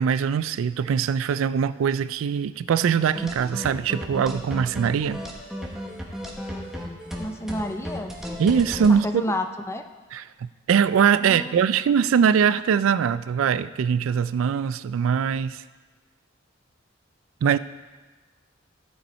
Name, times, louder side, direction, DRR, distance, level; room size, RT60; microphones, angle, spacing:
voice 1, 0.0-5.2 8.4-9.1 10.1-15.6 17.4-17.6, right 7 dB, 90° right, 16 dB, 0.3 m, -22 dB
sound 1, 3.1-9.0, equal, ahead, 1.0 m, -34 dB
voice 2, 7.2-8.2 8.9-9.8 11.2-11.5, left 1 dB, 15° left, 7 dB, 0.4 m, -30 dB
15.0 x 5.5 x 4.3 m, 1.3 s
head